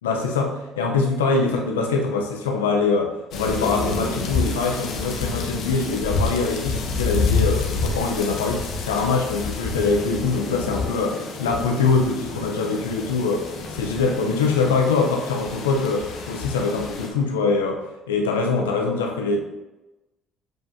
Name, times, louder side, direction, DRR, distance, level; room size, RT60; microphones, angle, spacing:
voice 1, 0.0-19.4, left 4 dB, 85° left, 2 dB, 0.7 m, -23 dB
sound 1, 3.3-17.1, left 4 dB, 65° left, 1.1 m, -28 dB
7.7 x 5.1 x 2.7 m, 1.0 s
hypercardioid pair, 60°, 0 cm